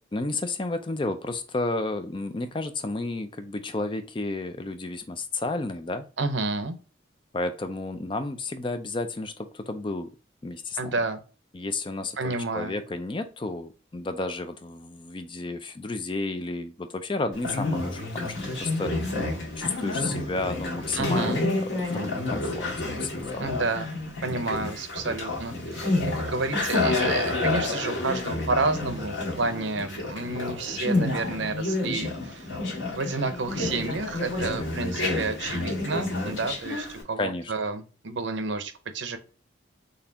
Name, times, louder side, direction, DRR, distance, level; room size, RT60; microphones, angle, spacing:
voice 1, 0.1-6.1 7.3-10.1 10.4-11.0 11.5-19.1 19.6-23.5 37.2-37.5, left 2 dB, 25° left, 0.4 m, -32 dB
voice 2, 6.2-6.8 10.8-11.2 12.2-12.8 21.0-21.4 23.4-23.9 24.2-32.6 32.9-39.2, right 3 dB, 75° right, 0.7 m, -30 dB
Conversation, 17.3-37.0, left 2 dB, 90° left, 1.8 m, -29 dB
4.2 x 3.3 x 2.8 m
head